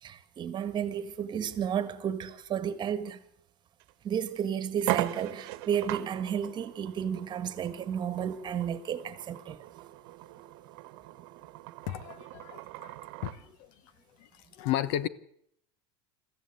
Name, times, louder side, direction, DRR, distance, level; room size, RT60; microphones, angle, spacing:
voice 1, 0.0-3.2 4.0-9.7, right 8 dB, 35° right, 1.7 m, -32 dB
sound 1, 3.8-3.9 4.3-4.4 4.8-13.4, right 17 dB, 65° right, 1.2 m, -39 dB
voice 2, 11.9-12.9 13.2-13.7 14.6-15.1, left 12 dB, 65° left, 1.1 m, -33 dB
22.0 x 14.5 x 8.0 m
supercardioid pair, 115°, 14 cm